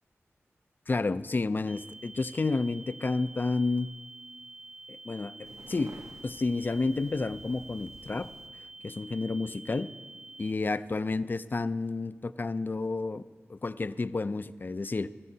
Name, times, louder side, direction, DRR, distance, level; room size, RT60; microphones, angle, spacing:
voice 1, 0.9-3.9 4.9-8.3 8.8-9.9 10.4-13.2 13.5-15.1, left 3 dB, 40° left, 14 dB, 0.4 m, -30 dB
sound 1, 1.7-10.5, right 2 dB, 10° right, 0.5 m, -48 dB
sound 2, 5.4-8.5, right 2 dB, 90° right, 1.1 m, -51 dB
20.5 x 13.0 x 2.8 m, 1.4 s
wide cardioid pair, 70°, 5 cm